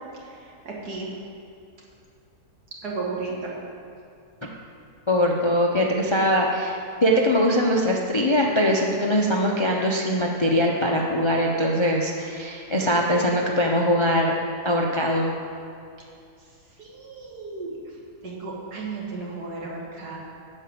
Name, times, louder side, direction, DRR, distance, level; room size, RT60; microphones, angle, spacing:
voice 1, 0.7-1.1 2.8-3.5 16.8-17.7 18.2-20.2, right 3 dB, 80° right, -3 dB, 2.3 m, -33 dB
voice 2, 5.1-14.3 14.6-15.3, equal, 35° left, 0 dB, 0.5 m, -22 dB
11.5 x 5.0 x 7.8 m, 2.5 s
omnidirectional pair, 1.7 m